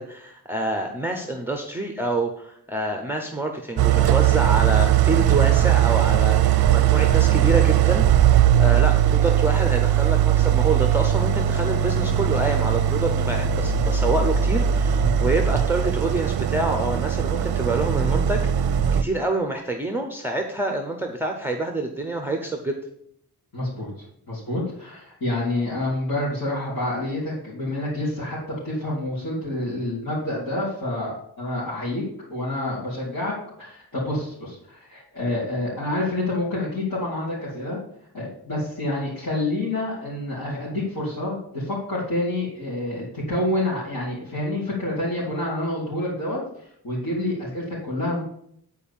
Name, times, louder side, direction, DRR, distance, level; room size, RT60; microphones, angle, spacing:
voice 1, 0.0-22.8, right 2 dB, 5° right, 3 dB, 0.7 m, -27 dB
Idling, 3.8-19.0, right 10 dB, 65° right, 0.5 m, -19 dB
voice 2, 23.5-23.9 24.3-32.0 32.3-37.8 38.1-48.2, left 1 dB, 50° left, -10 dB, 3.3 m, -28 dB
9.2 x 4.6 x 7.1 m, 0.71 s
wide cardioid pair, 160°, 39 cm